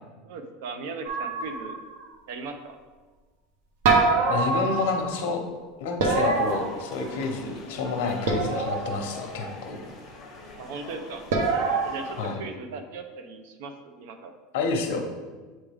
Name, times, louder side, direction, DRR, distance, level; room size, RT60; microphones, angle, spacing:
voice 1, 0.2-1.8 2.3-2.8 10.6-11.2 11.8-14.3, right 4 dB, 65° right, 7 dB, 0.6 m, -38 dB
sound 1, 1.1-2.0 3.8-5.2 6.0-7.3 8.3-9.1 11.3-11.9, right 3 dB, 90° right, 0.9 m, -25 dB
voice 2, 4.3-5.4 5.8-9.8 12.2-12.4 14.5-15.0, left 4 dB, 70° left, 3 dB, 0.9 m, -29 dB
sound 2, 6.2-12.3, left 2 dB, 15° left, 1.2 m, -44 dB
8.0 x 3.5 x 3.5 m, 1.3 s
supercardioid pair, 175°, 0 cm